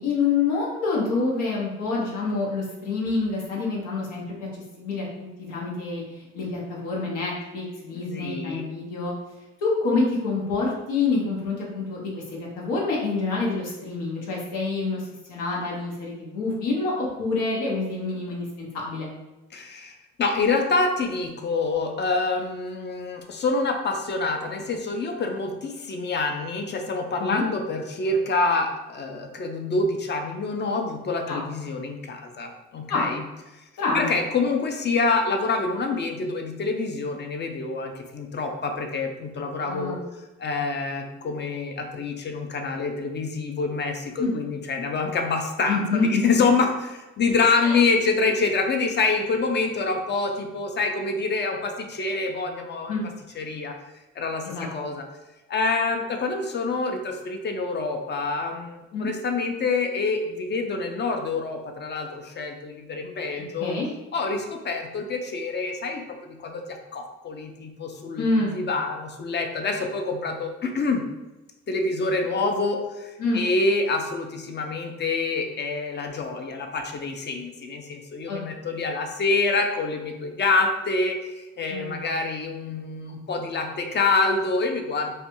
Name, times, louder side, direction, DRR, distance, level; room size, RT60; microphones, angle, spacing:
voice 1, 0.0-9.1 9.6-19.1 27.2-27.4 31.3-31.4 32.9-33.1 33.8-34.1 39.6-40.0 44.2-44.3 45.7-46.2 47.6-47.8 52.9-53.0 54.4-54.7 58.9-59.1 63.6-63.9 68.2-68.5 73.2-73.4 78.3-78.4 81.7-82.0, left 3 dB, 90° left, -4 dB, 0.7 m, -27 dB
voice 2, 7.9-8.6 19.5-33.2 33.5-33.6 33.9-40.0 40.4-45.8 46.1-52.9 53.4-53.7 54.2-55.0 55.5-63.7 64.1-71.0 71.7-85.1, left 3 dB, 35° left, 4 dB, 0.4 m, -26 dB
2.4 x 2.2 x 2.9 m, 1.0 s
cardioid pair, 90°, 30 cm